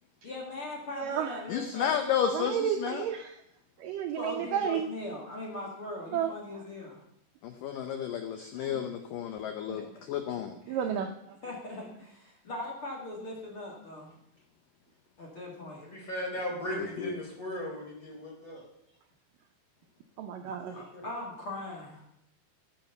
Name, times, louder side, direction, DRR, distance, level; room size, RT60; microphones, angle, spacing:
voice 1, 0.2-1.9 4.1-7.0 9.7-10.0 10.7-10.8 11.4-14.1 15.2-15.8 16.7-16.8 20.7-22.1, left 1 dB, 40° left, -2 dB, 2.5 m, -40 dB
voice 2, 1.0-1.4 2.2-3.4 3.8-4.9 6.1-6.6 8.6-8.9 9.7-9.8 10.7-11.4 20.2-20.8, right 8 dB, 85° right, 5 dB, 1.9 m, -32 dB
voice 3, 1.5-3.0 7.4-9.8 10.1-10.6 16.8-17.1, left 9 dB, 75° left, 7 dB, 2.0 m, -32 dB
voice 4, 15.8-18.6 20.7-21.0, equal, 20° left, -2 dB, 4.0 m, -37 dB
16.0 x 7.3 x 6.8 m, 0.78 s
omnidirectional pair, 5.0 m